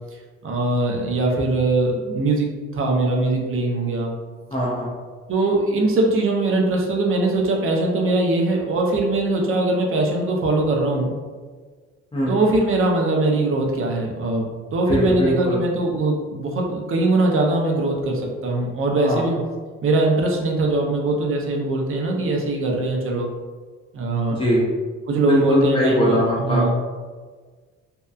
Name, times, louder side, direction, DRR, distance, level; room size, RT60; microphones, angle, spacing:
voice 1, 0.4-2.5 2.7-4.1 5.3-11.1 12.3-19.4 19.8-23.3 23.9-24.4 25.1-26.8, right 2 dB, 45° right, 0 dB, 0.6 m, -21 dB
voice 2, 4.5-4.9 12.1-12.3 14.9-15.6 19.0-19.2 24.3-24.7 25.3-26.7, equal, 20° left, -6 dB, 0.6 m, -20 dB
2.7 x 2.2 x 2.3 m, 1.5 s
cardioid pair, 90°, 30 cm